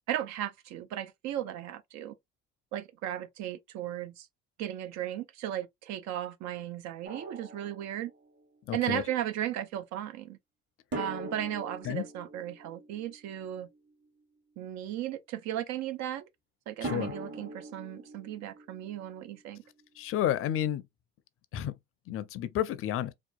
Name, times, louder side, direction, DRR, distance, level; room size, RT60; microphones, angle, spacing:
voice 1, 0.1-2.2 2.7-4.3 4.6-8.1 8.7-10.4 10.9-13.7 14.6-16.2 16.7-19.6, right 12 dB, 60° right, 0.5 m, -36 dB
Drum, 7.1-8.4 10.9-13.9 16.8-19.7, right 1 dB, 35° right, 1.3 m, -42 dB
voice 2, 8.7-9.0 11.8-12.0 16.8-17.1 20.0-20.8 21.5-21.8 22.1-23.1, left 11 dB, 45° left, 0.5 m, -31 dB
2.8 x 2.2 x 2.3 m
hypercardioid pair, 65°, 31 cm